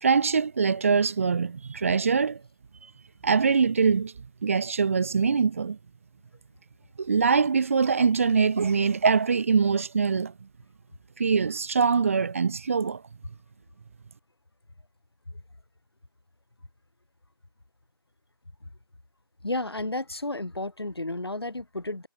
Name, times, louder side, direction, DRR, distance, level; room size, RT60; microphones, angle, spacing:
voice 1, 0.0-2.4 3.2-4.1 4.4-5.8 7.0-10.3 11.2-13.0, right 5 dB, 35° right, 0.6 m, -23 dB
voice 2, 19.4-22.1, left 2 dB, 90° left, 7.1 m, -32 dB
figure-of-eight pair, 165°, 13 cm